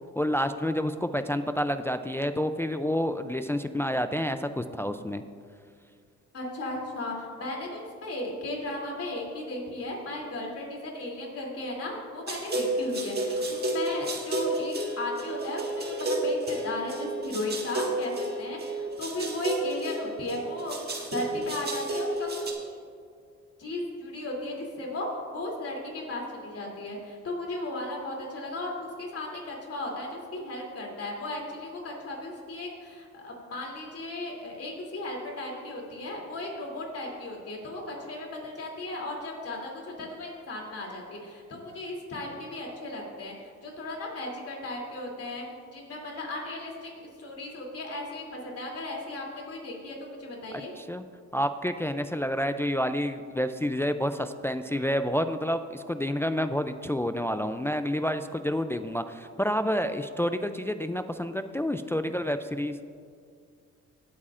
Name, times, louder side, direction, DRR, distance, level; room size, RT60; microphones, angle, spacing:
voice 1, 0.2-5.2 50.5-51.0 51.3-62.8, equal, 10° left, 9 dB, 0.3 m, -29 dB
voice 2, 6.3-20.8 21.1-22.7 23.6-45.4 45.7-50.7, left 2 dB, 50° left, -1 dB, 2.9 m, -36 dB
sound 1, 12.3-22.5, right 1 dB, 35° right, 1.7 m, -31 dB
19.0 x 8.4 x 2.5 m, 2.2 s
cardioid pair, 90°, 30 cm